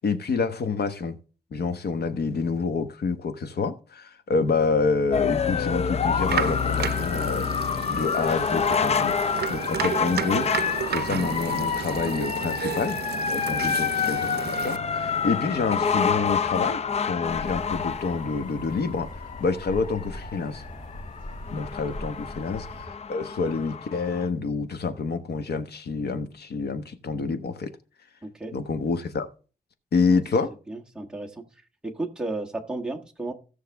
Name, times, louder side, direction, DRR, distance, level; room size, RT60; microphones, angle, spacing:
voice 1, 0.0-1.2 1.5-9.2 9.5-10.5 10.9-13.0 13.3-20.6 21.5-27.7 28.5-29.3 29.9-30.5, left 4 dB, 85° left, 1.1 m, -28 dB
sound 1, 5.1-24.3, left 6 dB, 40° left, 0.4 m, -28 dB
sound 2, 6.2-14.8, right 8 dB, 90° right, 0.5 m, -32 dB
sound 3, 17.3-22.9, equal, 60° left, 4.4 m, -41 dB
voice 2, 28.2-28.5 30.1-30.2 30.7-31.4 31.8-33.3, right 2 dB, 5° right, 1.4 m, -34 dB
16.5 x 6.5 x 3.5 m
wide cardioid pair, 175°, 16 cm